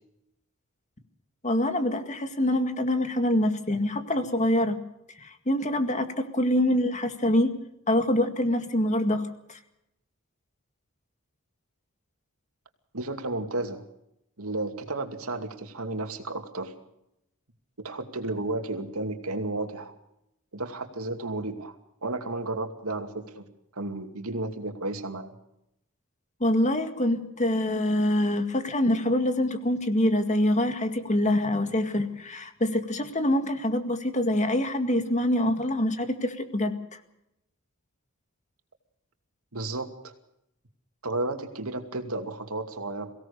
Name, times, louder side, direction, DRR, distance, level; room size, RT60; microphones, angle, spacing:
voice 1, 1.4-4.8 5.2-7.5 7.9-9.3 26.4-36.7, left 1 dB, 35° left, 8 dB, 2.0 m, -25 dB
voice 2, 12.9-13.8 14.4-16.7 17.8-19.9 20.5-21.8 22.0-23.5 23.7-25.3 39.5-40.1 41.0-43.1, right 2 dB, 85° right, 6 dB, 2.5 m, -33 dB
23.5 x 17.0 x 6.9 m, 0.82 s
head